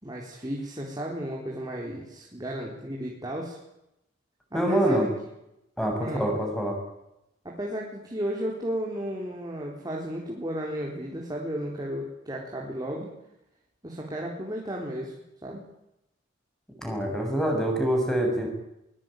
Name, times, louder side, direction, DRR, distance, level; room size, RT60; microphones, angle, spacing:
voice 1, 0.0-3.6 4.5-5.1 6.0-6.3 7.4-13.1 13.8-15.1 15.4-15.6, equal, 20° right, -2 dB, 4.1 m, -34 dB
voice 2, 4.5-5.0 5.8-6.8 16.8-18.5, right 1 dB, 5° left, 2 dB, 7.4 m, -25 dB
23.0 x 21.5 x 9.3 m, 0.88 s
head